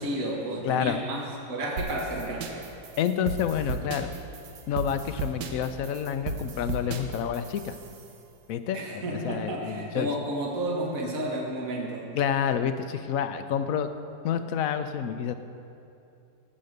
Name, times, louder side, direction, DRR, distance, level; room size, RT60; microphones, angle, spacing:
voice 1, 0.0-2.6 8.7-12.1, right 1 dB, 55° right, -2 dB, 2.1 m, -32 dB
voice 2, 0.6-1.0 3.0-4.1 4.7-7.8 8.5-10.2 12.1-13.9 14.2-15.3, left 8 dB, 65° left, 10 dB, 0.9 m, -28 dB
sound 1, 1.8-8.1, right 4 dB, 90° right, 1.6 m, -35 dB
17.0 x 7.6 x 6.6 m, 2.7 s
omnidirectional pair, 1.8 m